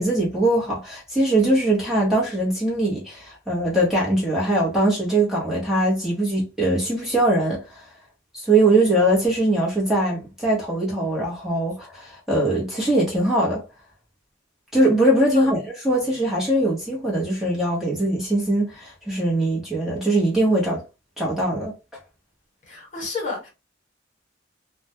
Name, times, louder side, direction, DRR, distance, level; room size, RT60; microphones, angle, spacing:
voice 1, 0.0-7.8 8.3-13.6 14.7-20.8 21.2-21.7, right 1 dB, ahead, 0.8 m, -21 dB
voice 2, 22.7-23.5, left 3 dB, 40° left, 1.3 m, -31 dB
2.2 x 2.1 x 2.8 m
head